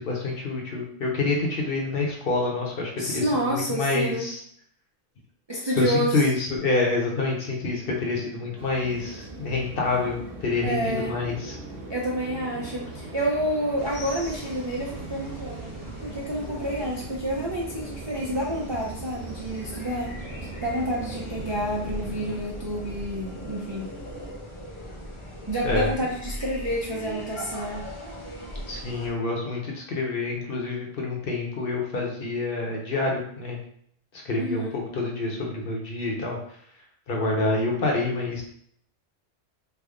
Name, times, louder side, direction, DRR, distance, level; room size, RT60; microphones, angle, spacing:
voice 1, 0.0-4.4 5.8-11.6 25.6-25.9 28.7-33.6 34.1-36.6 37.1-38.4, left 3 dB, 60° left, 0 dB, 0.9 m, -27 dB
voice 2, 3.0-4.3 5.5-6.2 10.6-11.1 11.9-20.1 20.6-23.9 25.5-27.9 34.4-34.7, equal, 40° right, -4 dB, 0.4 m, -29 dB
sound 1, 7.0-24.3, right 3 dB, 10° right, 0.8 m, -44 dB
sound 2, 8.6-22.4, right 2 dB, 65° right, 0.9 m, -42 dB
sound 3, 13.8-29.1, equal, 35° left, 0.5 m, -39 dB
3.4 x 2.1 x 3.6 m, 0.65 s
omnidirectional pair, 1.2 m